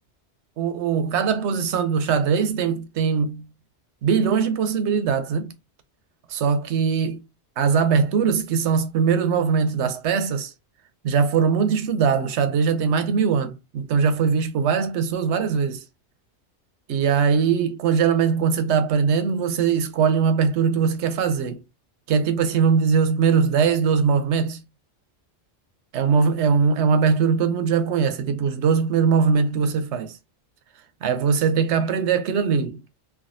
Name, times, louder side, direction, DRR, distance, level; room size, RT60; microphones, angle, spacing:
voice 1, 0.6-3.4 4.0-5.5 6.3-7.2 7.6-10.5 11.0-15.8 16.9-21.6 22.1-24.6 25.9-30.2 31.0-32.8, right 6 dB, 85° right, 0.9 m, -21 dB
3.5 x 2.3 x 2.4 m
omnidirectional pair, 1.1 m